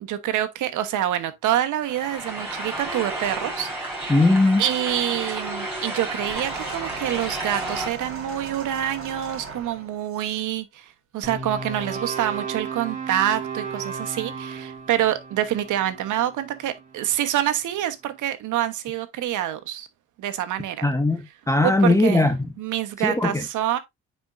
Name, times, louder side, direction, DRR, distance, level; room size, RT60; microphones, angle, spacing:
voice 1, 0.0-4.1 4.6-19.9 20.2-20.9 21.6-22.3 22.6-23.8, right 12 dB, 80° right, 1.2 m, -26 dB
sound 1, 1.8-7.9, right 1 dB, 5° right, 4.7 m, -32 dB
voice 2, 4.1-4.6 20.8-22.4 23.0-23.4, left 2 dB, 10° left, 0.9 m, -19 dB
sound 2, 6.3-10.5 11.4-11.5, right 4 dB, 45° right, 4.4 m, -38 dB
sound 3, 11.2-17.5, right 5 dB, 25° right, 2.4 m, -35 dB
9.4 x 4.5 x 2.6 m
cardioid pair, 90°, 30 cm